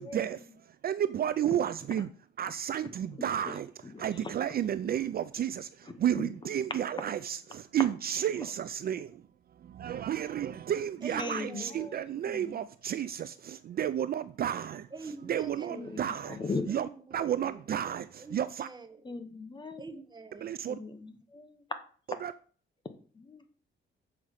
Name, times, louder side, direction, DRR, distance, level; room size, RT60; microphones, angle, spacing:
voice 1, 0.0-0.5 2.0-2.1 3.1-4.3 5.8-6.3 8.4-8.5 11.2-12.6 15.7-16.7 19.0-19.9 20.7-21.7 23.1-23.5, left 3 dB, 20° left, 1.0 m, -40 dB
voice 2, 0.7-2.1 2.4-3.7 4.0-9.2 9.6-14.9 15.3-16.4 16.7-18.7 20.4-20.8 22.2-22.3, right 10 dB, 50° right, 0.4 m, -32 dB
voice 3, 11.0-11.9 14.9-16.0 16.7-17.6 18.2-19.0 19.8-20.6, right 4 dB, 20° right, 1.0 m, -45 dB
7.2 x 5.0 x 6.4 m
cardioid pair, 140°, 20 cm